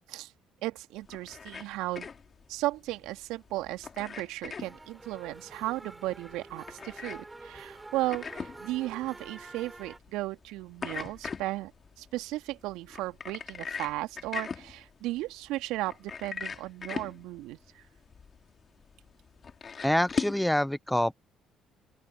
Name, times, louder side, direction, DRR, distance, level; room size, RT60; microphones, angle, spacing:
voice 1, 0.6-2.1 2.5-11.7 12.0-17.8, right 17 dB, 70° right, 2.4 m, -35 dB
sound 1, 1.0-20.5, left 5 dB, 40° left, 3.4 m, -41 dB
sound 2, 4.6-10.0, right 2 dB, 20° right, 6.3 m, -48 dB
voice 2, 19.8-21.1, left 1 dB, 5° left, 0.4 m, -26 dB
open air
hypercardioid pair, 50°, 0 cm